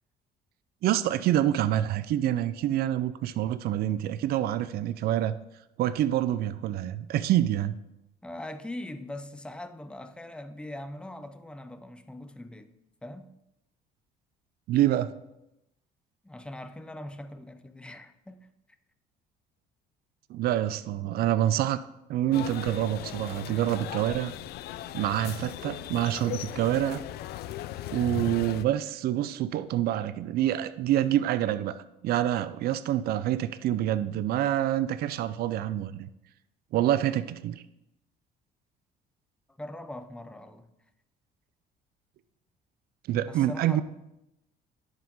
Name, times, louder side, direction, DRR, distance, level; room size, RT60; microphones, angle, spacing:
voice 1, 0.8-5.4 5.8-7.8 14.7-15.1 20.3-21.8 22.1-24.4 24.9-27.0 27.9-31.8 32.0-36.1 36.7-37.6 43.1-43.8, right 12 dB, 65° right, 0.4 m, -27 dB
voice 2, 8.2-12.7 13.0-13.3 16.2-18.5 39.6-40.7 43.1-43.8, left 1 dB, 5° left, 0.5 m, -41 dB
sound 1, 22.3-28.6, left 13 dB, 70° left, 0.4 m, -38 dB
10.5 x 5.1 x 3.7 m
cardioid pair, 110°, 17 cm